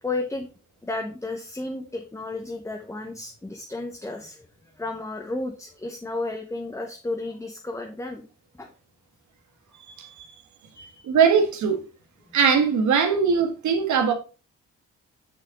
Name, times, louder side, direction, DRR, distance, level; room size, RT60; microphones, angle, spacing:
voice 1, 0.0-0.5 0.8-8.2 8.6-8.7 10.7-11.1, left 2 dB, 10° left, 0.9 m, -33 dB
voice 2, 11.0-11.8 12.3-14.1, right 6 dB, 70° right, 1.5 m, -20 dB
6.3 x 5.7 x 3.6 m
cardioid pair, 90°, 30 cm